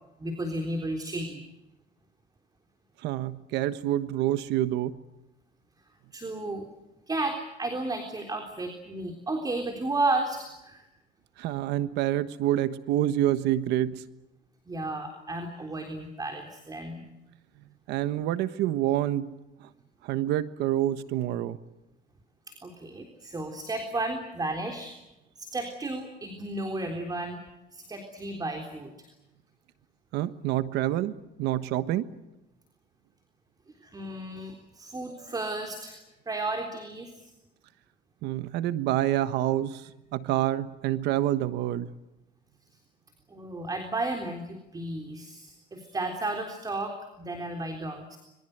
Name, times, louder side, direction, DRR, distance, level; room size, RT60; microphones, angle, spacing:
voice 1, 0.2-1.4 6.1-6.7 7.1-10.9 14.7-17.0 22.5-25.0 25.4-27.4 27.7-29.1 33.8-36.0 36.3-37.3 43.3-48.2, right 2 dB, 20° right, 4 dB, 3.7 m, -33 dB
voice 2, 3.0-5.0 11.4-14.0 17.9-19.3 20.0-21.6 30.1-32.1 38.2-39.8 40.1-41.9, right 13 dB, 90° right, 13 dB, 1.3 m, -27 dB
27.0 x 22.5 x 8.0 m, 0.96 s
cardioid pair, 110°, 17 cm